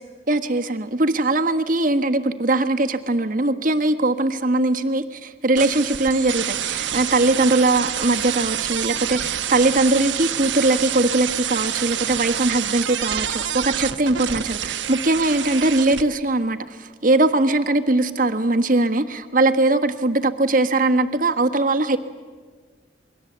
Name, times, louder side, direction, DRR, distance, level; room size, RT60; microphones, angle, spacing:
voice 1, 0.3-22.0, right 2 dB, 45° right, 8 dB, 1.4 m, -20 dB
sound 1, 5.6-16.0, right 9 dB, 80° right, 1.1 m, -27 dB
28.5 x 22.5 x 8.0 m, 1.5 s
head